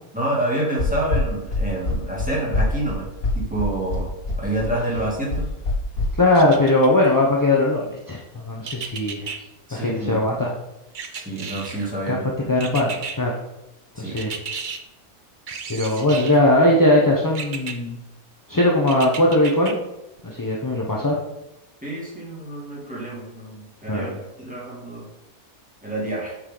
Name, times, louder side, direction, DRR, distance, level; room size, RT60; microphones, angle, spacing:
voice 1, 0.1-3.1 3.3-4.1 4.4-5.5 9.7-10.3 11.1-12.3 14.0-14.2 21.8-24.1 24.4-25.1 25.8-26.3, right 1 dB, 5° right, -5 dB, 2.3 m, -27 dB
sound 1, 0.8-6.1, left 2 dB, 65° left, 2.5 m, -24 dB
voice 2, 6.2-9.3 9.7-10.5 12.1-12.2 12.5-13.3 14.0-14.3 15.7-18.0 18.5-19.8 20.2-21.2 23.9-24.2, left 1 dB, 20° left, -3 dB, 0.7 m, -19 dB
sound 2, 6.3-7.1 8.6-9.4 10.9-11.9 12.6-13.2 14.2-14.8 15.5-16.4 17.3-17.7 18.9-19.7 20.2-20.3, right 5 dB, 45° right, 0.6 m, -33 dB
8.0 x 6.5 x 3.9 m, 0.93 s
omnidirectional pair, 1.6 m